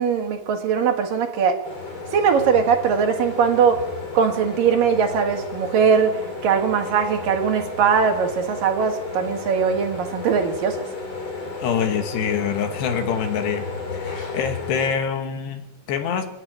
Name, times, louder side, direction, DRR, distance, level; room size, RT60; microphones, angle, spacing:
voice 1, 0.0-1.6 2.1-3.9 4.1-10.9, right 6 dB, 60° right, 2.9 m, -20 dB
sound 1, 1.6-14.9, left 4 dB, 35° left, 4.0 m, -33 dB
voice 2, 11.6-13.6 13.9-16.3, left 7 dB, 70° left, 3.3 m, -25 dB
26.5 x 11.0 x 9.2 m
omnidirectional pair, 5.4 m